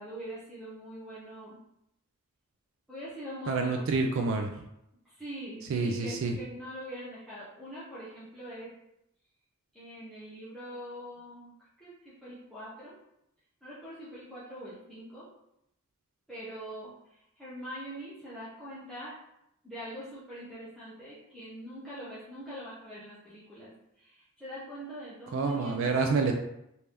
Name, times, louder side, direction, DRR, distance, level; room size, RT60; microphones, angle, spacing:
voice 1, 0.0-1.6 2.9-4.1 5.0-8.7 9.7-11.5 11.8-12.9 13.6-15.3 16.3-19.1 19.6-23.7 24.0-25.9, equal, ahead, -12 dB, 0.7 m, -43 dB
voice 2, 3.5-4.5 5.7-6.4 25.3-26.3, right 4 dB, 60° right, 4 dB, 0.3 m, -28 dB
3.3 x 2.7 x 3.3 m, 0.81 s
head